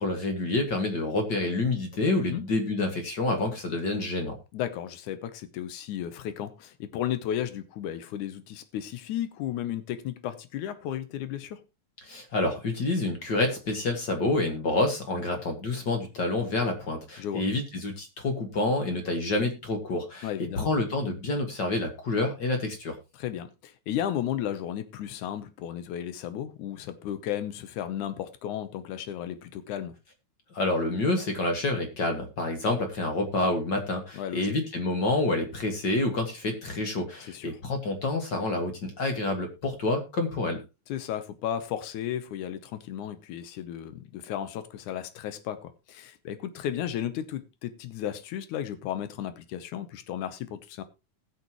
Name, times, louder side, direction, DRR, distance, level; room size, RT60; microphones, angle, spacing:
voice 1, 0.0-4.4 12.0-20.3 20.6-23.0 30.5-40.6, left 2 dB, 40° left, 2.1 m, -28 dB
voice 2, 4.5-11.6 15.3-15.4 17.2-17.4 20.2-20.7 23.1-30.0 34.1-34.5 37.3-37.5 40.9-50.8, left 10 dB, 80° left, 2.4 m, -34 dB
20.0 x 6.8 x 3.0 m
omnidirectional pair, 3.4 m